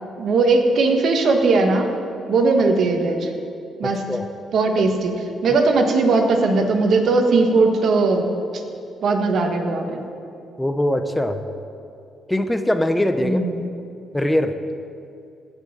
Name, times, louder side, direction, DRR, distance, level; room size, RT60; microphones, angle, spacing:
voice 1, 0.2-1.9 2.3-3.3 3.8-4.0 4.5-5.1 5.4-8.3 9.0-10.0 13.2-13.6, right 3 dB, 65° right, 4 dB, 1.5 m, -18 dB
voice 2, 3.8-4.3 10.6-11.4 12.3-13.4 14.1-14.5, left 1 dB, 10° left, 8 dB, 0.7 m, -21 dB
16.5 x 5.5 x 7.3 m, 2.5 s
cardioid pair, 90°, 0 cm